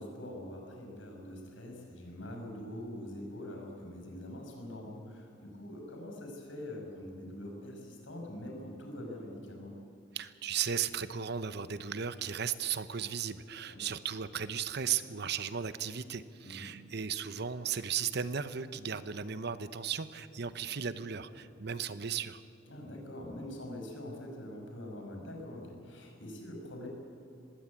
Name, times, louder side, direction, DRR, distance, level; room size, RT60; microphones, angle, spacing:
voice 1, 0.0-9.7 13.7-13.9 16.4-16.7 22.7-26.9, left 1 dB, 85° left, 1 dB, 5.5 m, -44 dB
voice 2, 10.1-22.4, right 7 dB, 60° right, 13 dB, 0.9 m, -36 dB
20.5 x 16.5 x 8.5 m, 2.6 s
head